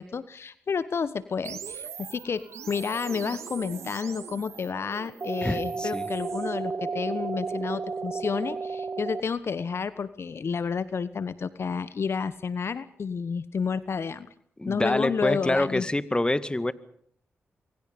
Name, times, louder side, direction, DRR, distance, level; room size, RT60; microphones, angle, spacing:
voice 1, 0.0-14.3 14.7-15.8, left 5 dB, 60° left, 15 dB, 1.3 m, -30 dB
sound 1, 1.4-6.5, right 8 dB, 80° right, 2.3 m, -42 dB
sound 2, 5.2-9.2, right 4 dB, 45° right, 1.0 m, -32 dB
voice 2, 5.4-6.1 14.6-16.7, left 1 dB, 20° left, 14 dB, 2.0 m, -26 dB
28.5 x 23.5 x 5.4 m, 0.62 s
supercardioid pair, 40°, 5 cm